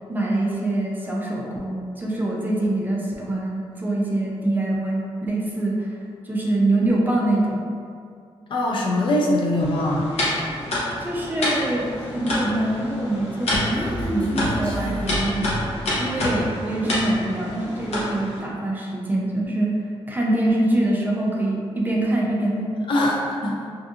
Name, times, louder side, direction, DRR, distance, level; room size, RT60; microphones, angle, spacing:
voice 1, 0.1-6.0 6.2-7.6 11.0-15.4 16.0-19.7 20.1-22.8, right 1 dB, 20° right, -4 dB, 0.3 m, -24 dB
voice 2, 8.5-10.1 22.9-23.6, left 1 dB, 55° left, -2 dB, 0.4 m, -22 dB
sound 1, 9.6-18.4, left 1 dB, 90° left, 0.8 m, -28 dB
Human voice, 13.1-16.1, equal, 15° left, 0.7 m, -31 dB
2.6 x 2.6 x 2.4 m, 2.3 s
wide cardioid pair, 160°, 10 cm